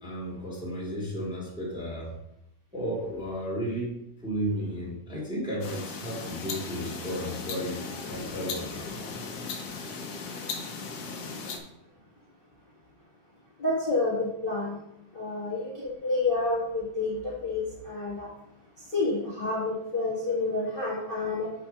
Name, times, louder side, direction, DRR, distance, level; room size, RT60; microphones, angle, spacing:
voice 1, 0.0-2.1 2.7-8.9, equal, ahead, -5 dB, 1.4 m, -34 dB
sound 1, 5.6-11.6, left 4 dB, 80° left, 1.3 m, -37 dB
voice 2, 13.6-14.7 15.1-18.3 18.9-21.5, left 3 dB, 30° left, -6 dB, 0.9 m, -29 dB
7.3 x 4.9 x 5.3 m, 0.81 s
omnidirectional pair, 4.0 m